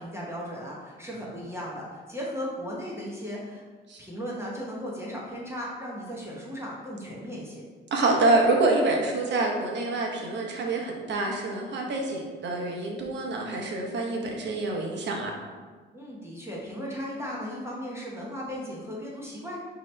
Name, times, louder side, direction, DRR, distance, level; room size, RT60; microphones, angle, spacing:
voice 1, 0.0-3.6 4.0-7.6 15.9-19.6, equal, 15° right, -4 dB, 0.9 m, -36 dB
voice 2, 7.9-15.3, right 2 dB, 65° right, 0 dB, 0.9 m, -26 dB
4.8 x 3.0 x 3.2 m, 1.4 s
cardioid pair, 90°, 20 cm